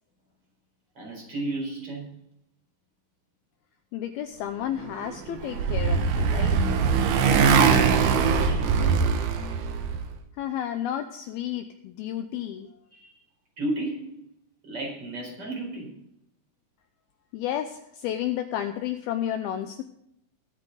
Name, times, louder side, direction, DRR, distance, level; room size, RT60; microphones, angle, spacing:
voice 1, 1.0-2.1 7.2-8.7 12.3-12.4 12.9-13.2 13.6-14.2 14.6-15.9, right 1 dB, 30° right, 0 dB, 5.1 m, -33 dB
voice 2, 3.9-6.6 10.4-12.7 17.3-19.8, left 11 dB, 85° left, 8 dB, 2.2 m, -31 dB
Motorcycle, 5.0-10.1, right 6 dB, 85° right, 1.7 m, -22 dB
21.5 x 9.2 x 3.9 m, 0.74 s
omnidirectional pair, 5.1 m